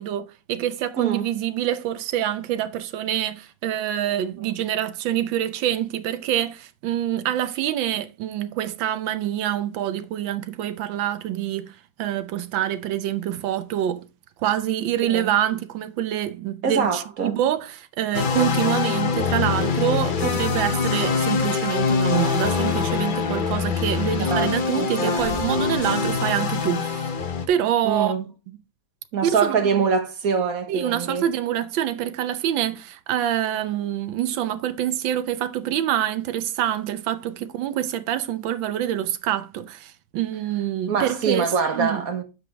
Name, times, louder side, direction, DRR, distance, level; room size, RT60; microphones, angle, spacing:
voice 1, 0.0-14.1 14.4-27.1 27.5-28.1 29.2-29.8 30.7-42.0, right 11 dB, 75° right, 1.5 m, -26 dB
voice 2, 1.0-1.3 4.4-4.5 15.1-15.3 16.6-17.4 24.2-25.4 27.8-28.2 29.1-31.2 40.9-42.2, right 5 dB, 50° right, 1.4 m, -24 dB
sound 1, 18.1-27.5, left 5 dB, 65° left, 0.5 m, -24 dB
9.3 x 7.4 x 3.4 m
omnidirectional pair, 2.2 m